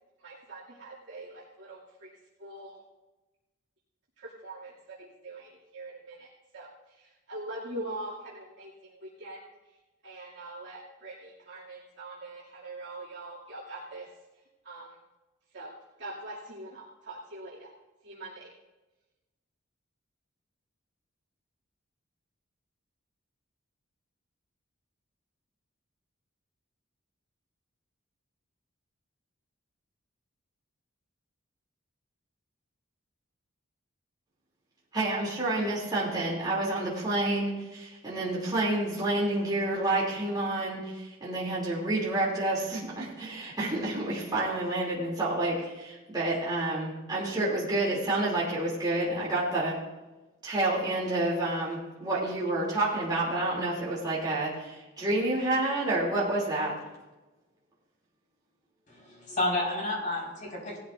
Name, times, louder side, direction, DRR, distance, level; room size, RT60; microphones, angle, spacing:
voice 1, 0.2-2.1 2.4-2.8 4.2-9.4 10.0-14.1 14.6-15.0 15.5-15.7 16.0-17.7 18.0-18.5, right 2 dB, 60° right, -8 dB, 2.7 m, -43 dB
voice 2, 34.9-49.8 50.4-56.7, right 2 dB, 20° right, -7 dB, 3.0 m, -29 dB
voice 3, 58.9-60.8, left 1 dB, 40° left, -3 dB, 5.2 m, -31 dB
18.5 x 13.0 x 2.6 m, 1.1 s
head